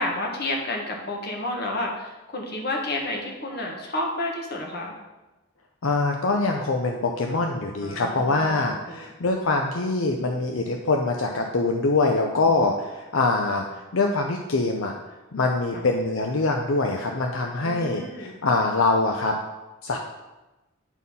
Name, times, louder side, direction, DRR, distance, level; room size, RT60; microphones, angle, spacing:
voice 1, 0.0-4.9 7.8-8.6 8.9-9.1 12.5-12.8 15.7-15.8 17.6-18.3, left 1 dB, 50° left, 1 dB, 1.4 m, -30 dB
voice 2, 5.8-13.6 13.9-14.9 15.3-19.3 19.8-20.0, left 3 dB, 75° left, 2 dB, 0.6 m, -24 dB
9.0 x 4.2 x 5.4 m, 1.1 s
head